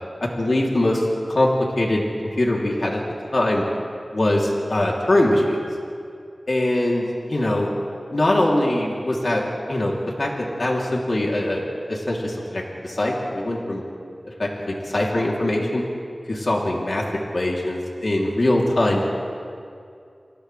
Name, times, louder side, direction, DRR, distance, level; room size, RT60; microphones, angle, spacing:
voice 1, 0.2-1.5 1.8-2.0 2.4-3.0 3.3-3.6 4.1-5.6 6.5-7.7 8.1-13.8 14.2-15.8 16.3-17.0 17.3-19.1, left 1 dB, 60° left, -2 dB, 3.1 m, -22 dB
29.0 x 27.5 x 3.4 m, 2.4 s
wide cardioid pair, 70°, 0 cm